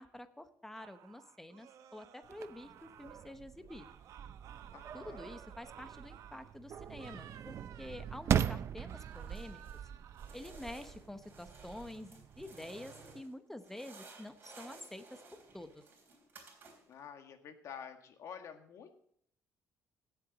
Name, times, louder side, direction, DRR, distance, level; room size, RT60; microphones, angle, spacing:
voice 1, 0.0-3.9 4.9-9.6 10.3-15.2 15.5-15.8, left 1 dB, 5° left, 10 dB, 0.9 m, -48 dB
sound 1, 0.7-3.4 3.7-6.5 6.9-8.5 8.8-10.4, right 10 dB, 70° right, 0.9 m, -56 dB
sound 2, 2.2-13.2, right 9 dB, 50° right, 0.5 m, -40 dB
voice 2, 4.7-5.3 16.9-18.9, left 7 dB, 60° left, 6 dB, 1.7 m, -49 dB
sound 3, 9.0-9.9 10.1-13.3 13.6-17.0, right 3 dB, 35° right, 3.7 m, -56 dB
17.0 x 7.8 x 4.0 m, 0.66 s
cardioid pair, 130°, 6 cm